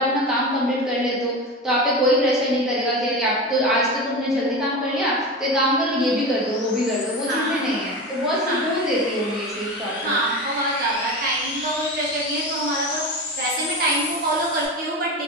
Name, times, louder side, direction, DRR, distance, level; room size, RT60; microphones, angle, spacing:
voice 1, 0.0-1.4 1.6-10.1, equal, 5° right, -8 dB, 0.6 m, -22 dB
sound 1, 3.0-14.7, left 3 dB, 80° left, 0.5 m, -33 dB
voice 2, 7.3-7.9 8.5-8.7 10.0-13.0 13.4-15.2, right 1 dB, 50° right, -5 dB, 0.6 m, -25 dB
2.6 x 2.3 x 2.8 m, 1.3 s
head